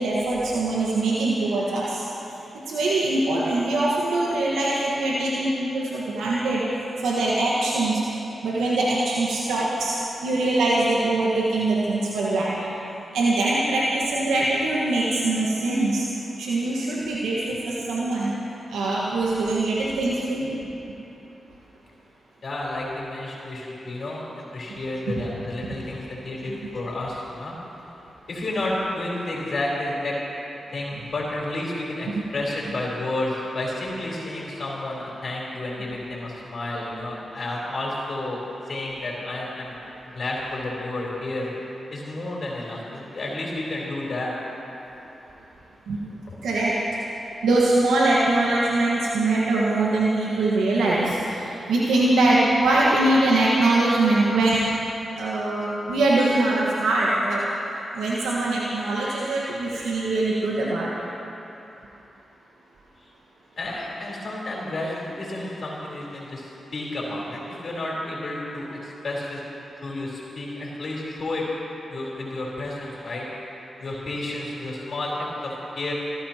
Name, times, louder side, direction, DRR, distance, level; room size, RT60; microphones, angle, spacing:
voice 1, 0.0-2.0 2.5-6.7 7.0-8.0 8.4-12.6 13.1-16.1 16.4-18.3 18.7-20.6 26.5-26.6 45.9-46.0 46.4-46.8 47.4-54.7 55.1-57.4 57.9-61.0, right 2 dB, 85° right, -6 dB, 1.6 m, -22 dB
voice 2, 22.4-27.6 28.3-30.2 30.7-38.4 38.7-39.8 40.1-41.5 41.9-44.3 46.3-46.4 63.6-69.4 69.8-71.5 71.9-73.3 73.8-75.9, left 2 dB, 60° left, -4 dB, 4.2 m, -31 dB
29.5 x 14.0 x 3.0 m, 3.0 s
supercardioid pair, 45°, 0 cm